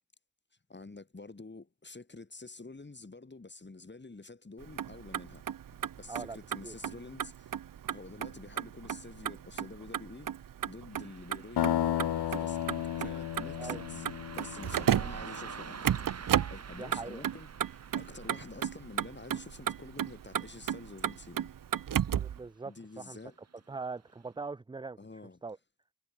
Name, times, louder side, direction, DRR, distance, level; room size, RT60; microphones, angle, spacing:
voice 1, 0.7-5.4 5.8-7.6 7.9-10.3 10.7-14.1 14.3-16.0 16.5-21.5 22.7-23.4 25.0-25.4, left 3 dB, 25° left, 3.8 m, -48 dB
Motor vehicle (road), 4.6-22.4, right 9 dB, 55° right, 0.7 m, -35 dB
Car passing by, 10.9-21.7 22.0-22.1 23.1-23.2 23.7-23.8 24.3-24.4, right 6 dB, 40° right, 1.1 m, -49 dB
sound 1, 11.6-15.4, left 11 dB, 80° left, 0.8 m, -33 dB
voice 2, 16.8-17.2 22.0-23.2 23.7-25.0 25.4-25.6, right 4 dB, 15° right, 0.4 m, -41 dB
wide cardioid pair, 115°, 39 cm